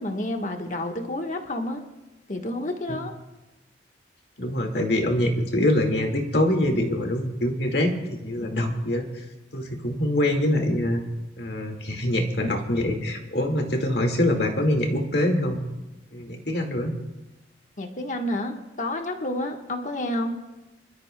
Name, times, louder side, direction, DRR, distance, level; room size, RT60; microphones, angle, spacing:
voice 1, 0.0-1.8 2.3-3.1 17.8-20.4, left 1 dB, 45° left, 3 dB, 1.3 m, -29 dB
voice 2, 4.4-9.1 9.5-11.0 11.4-15.6 16.1-16.9, left 1 dB, 65° left, 3 dB, 1.9 m, -24 dB
25.5 x 13.0 x 2.2 m, 1.0 s
head